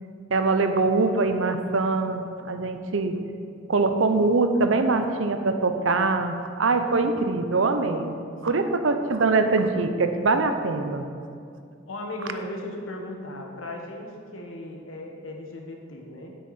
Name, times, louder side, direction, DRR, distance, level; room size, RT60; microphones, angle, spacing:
voice 1, 0.3-3.2 3.7-8.2 8.4-11.1, right 3 dB, 70° right, 8 dB, 0.7 m, -23 dB
voice 2, 11.9-16.3, left 1 dB, 80° left, 1 dB, 1.4 m, -36 dB
9.3 x 9.1 x 4.2 m, 2.3 s
head